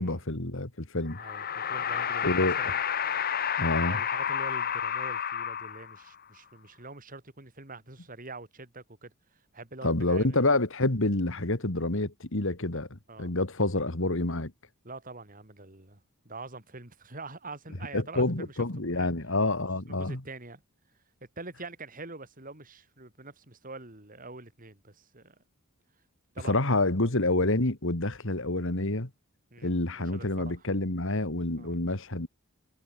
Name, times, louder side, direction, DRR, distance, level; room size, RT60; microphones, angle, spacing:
voice 1, 0.0-1.2 2.2-2.6 3.6-4.0 9.8-14.5 17.9-20.2 26.4-29.1 29.6-32.3, left 2 dB, 60° left, 2.2 m, -28 dB
sound 1, 1.1-6.1, left 8 dB, 40° left, 0.9 m, -30 dB
voice 2, 1.2-2.8 3.8-10.4 13.1-13.3 14.8-18.7 18.9-19.1 19.9-20.6 21.4-25.4 26.4-26.6 27.0-27.1 29.5-30.7 31.6-31.9, right 3 dB, 40° right, 3.3 m, -45 dB
head